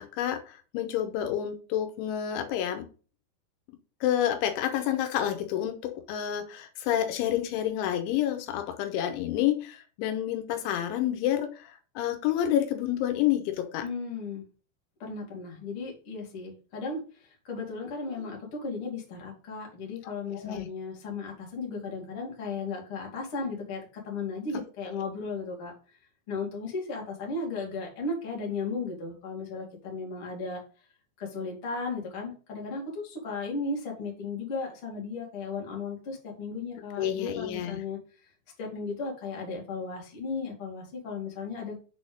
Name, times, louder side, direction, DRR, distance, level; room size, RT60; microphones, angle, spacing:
voice 1, 0.0-2.8 4.0-13.8 20.3-20.7 37.0-37.8, left 11 dB, 85° left, 7 dB, 3.3 m, -29 dB
voice 2, 13.8-14.5 15.0-25.7 26.3-30.6 31.2-38.0 38.6-41.8, left 4 dB, 40° left, -1 dB, 2.3 m, -35 dB
6.9 x 4.3 x 5.2 m, 0.37 s
omnidirectional pair, 5.4 m